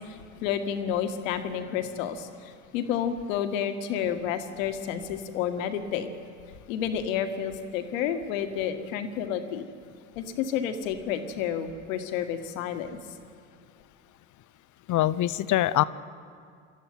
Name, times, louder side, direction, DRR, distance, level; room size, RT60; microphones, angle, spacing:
voice 1, 0.1-6.1 6.7-9.7 10.2-13.0, left 8 dB, 70° left, 8 dB, 1.8 m, -30 dB
voice 2, 14.9-15.8, left 14 dB, 45° left, 17 dB, 0.8 m, -23 dB
24.0 x 13.5 x 9.0 m, 2.3 s
hypercardioid pair, 65°, 41 cm